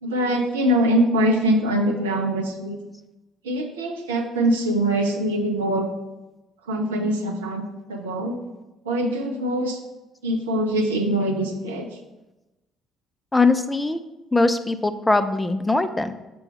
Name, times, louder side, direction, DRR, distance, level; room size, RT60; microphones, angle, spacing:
voice 1, 0.0-2.8 3.4-5.9 6.7-8.4 8.8-9.8 10.2-11.9, right 1 dB, 75° right, 3 dB, 0.6 m, -23 dB
voice 2, 13.3-14.0 14.3-16.1, left 3 dB, 15° left, 10 dB, 0.5 m, -21 dB
6.9 x 5.8 x 3.3 m, 1.0 s
figure-of-eight pair, 50°, 0 cm